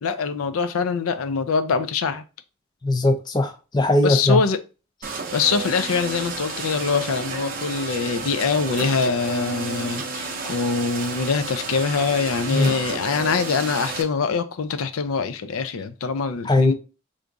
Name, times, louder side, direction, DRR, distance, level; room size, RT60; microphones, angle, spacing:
voice 1, 0.0-2.2 4.0-4.6 5.3-16.7, left 5 dB, 85° left, 0.4 m, -24 dB
voice 2, 2.8-4.4 12.5-12.7 16.5-16.7, left 2 dB, 20° left, 0.4 m, -19 dB
sound 1, 5.0-14.0, right 4 dB, 40° right, 0.6 m, -31 dB
3.5 x 2.6 x 3.9 m
head